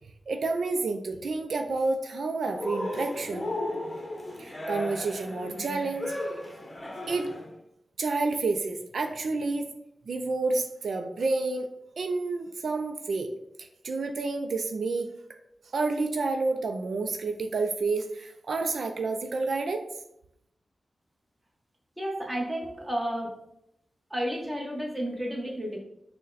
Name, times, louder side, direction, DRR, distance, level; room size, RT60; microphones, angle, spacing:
voice 1, 0.3-3.5 4.4-6.1 7.1-7.3 8.0-9.7 10.1-11.7 12.0-13.3 13.6-15.1 15.7-19.8, right 3 dB, 75° right, 5 dB, 0.4 m, -29 dB
Cheering, 2.6-7.5, left 1 dB, 25° left, 0.8 m, -35 dB
voice 2, 22.0-23.4 24.1-25.8, equal, 10° right, -1 dB, 1.0 m, -32 dB
6.3 x 2.1 x 4.0 m, 0.81 s
wide cardioid pair, 125°, 0 cm